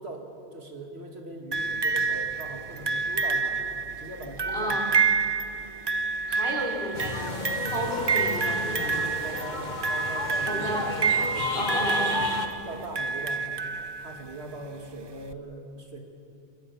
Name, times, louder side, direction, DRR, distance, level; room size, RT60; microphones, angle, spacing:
voice 1, 0.0-3.6 4.0-4.8 8.8-11.9 12.6-13.5 14.0-16.0, right 2 dB, 90° right, 1 dB, 2.7 m, -40 dB
sound 1, 1.5-14.3 15.3-15.4, right 5 dB, 35° right, 0.4 m, -28 dB
voice 2, 4.5-4.9 6.2-9.0 10.5-10.9 11.5-12.4, equal, 70° left, -2 dB, 4.1 m, -32 dB
sound 2, 6.9-12.5, left 3 dB, 45° left, 1.4 m, -33 dB
24.0 x 18.0 x 7.2 m, 2.7 s
omnidirectional pair, 1.1 m